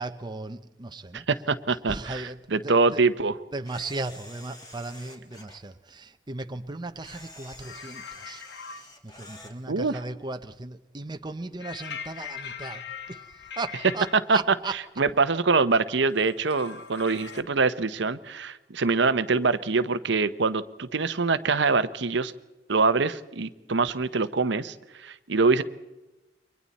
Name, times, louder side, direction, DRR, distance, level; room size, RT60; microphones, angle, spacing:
voice 1, 0.0-1.3 1.9-3.0 3.5-8.4 8.7-13.2 13.6-14.7, right 3 dB, 25° right, 0.8 m, -37 dB
voice 2, 1.1-3.4 9.7-10.0 14.3-14.4 14.7-22.3 22.7-25.6, right 4 dB, 70° right, 0.9 m, -24 dB
Camera, 3.6-5.6 7.0-9.5, left 1 dB, 20° left, 2.7 m, -48 dB
sound 1, 7.6-8.8 11.6-14.1 16.1-17.4, left 7 dB, 65° left, 1.5 m, -41 dB
29.5 x 23.5 x 4.2 m
head